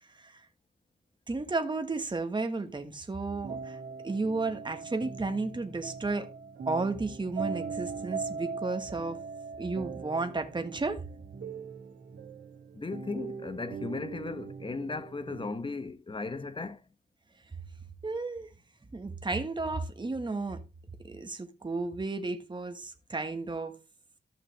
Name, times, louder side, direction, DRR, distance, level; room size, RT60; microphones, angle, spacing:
voice 1, 1.3-3.8 4.0-6.3 6.7-9.2 9.6-11.0 18.0-18.5 18.9-20.6 21.0-23.8, right 3 dB, 25° right, 1.5 m, -33 dB
sound 1, 3.3-15.5, right 5 dB, 90° right, 2.0 m, -40 dB
voice 2, 12.7-16.8, left 3 dB, 30° left, 1.0 m, -36 dB
14.0 x 6.0 x 3.3 m
wide cardioid pair, 90°, 18 cm